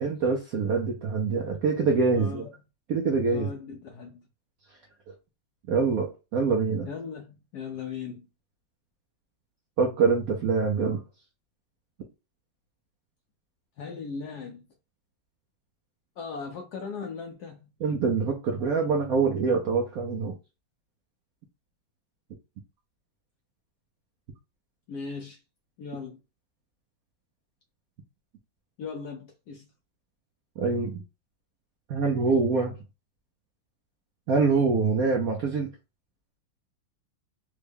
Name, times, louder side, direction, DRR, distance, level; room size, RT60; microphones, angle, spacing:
voice 1, 0.0-2.5 2.9-3.5 5.7-6.9 9.8-11.0 17.8-20.3 30.6-31.0 31.9-32.8 34.3-35.7, right 4 dB, 75° right, 0.8 m, -25 dB
voice 2, 2.1-2.5 3.3-4.3 6.9-8.3 13.8-14.7 16.2-17.7 24.9-25.4 25.8-26.2 28.8-29.7, left 5 dB, 75° left, 0.9 m, -38 dB
3.5 x 2.2 x 3.4 m
omnidirectional pair, 2.2 m